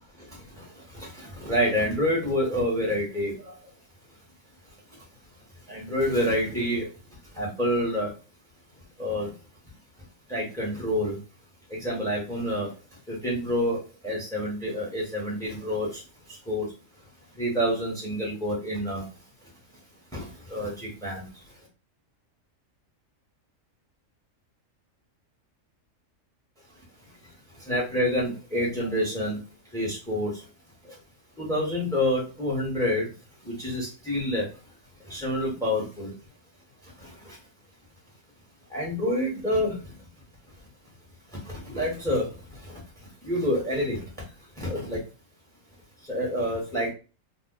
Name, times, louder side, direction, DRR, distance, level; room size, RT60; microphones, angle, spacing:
voice 1, 0.9-3.5 5.7-6.9 7.3-8.1 9.0-9.3 10.3-11.2 11.7-12.7 13.1-13.8 14.0-16.0 16.5-16.6 17.4-19.0 20.1-21.2 27.7-29.4 29.7-30.3 31.4-33.0 33.4-34.5 35.1-36.1 37.0-37.1 38.7-39.7 41.4-42.3 42.7-42.8 43.2-44.0 44.6-45.0 46.1-46.9, equal, 5° left, -3 dB, 1.1 m, -27 dB
2.6 x 2.4 x 3.8 m, 0.33 s
omnidirectional pair, 1.4 m